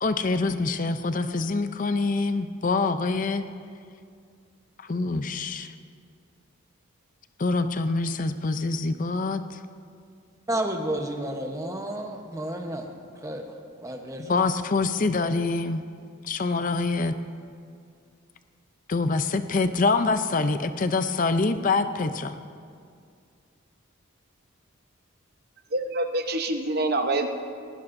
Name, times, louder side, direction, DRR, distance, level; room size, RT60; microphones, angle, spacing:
voice 1, 0.0-3.4 4.8-5.7 7.4-9.6 14.3-15.8 16.2-17.1 18.9-22.3, left 3 dB, 35° left, 10 dB, 0.5 m, -25 dB
voice 2, 10.5-13.4 13.8-14.3, right 1 dB, 15° right, 3 dB, 0.9 m, -31 dB
voice 3, 25.7-27.3, right 2 dB, 45° right, 5 dB, 0.8 m, -26 dB
19.5 x 16.5 x 2.6 m, 2.3 s
head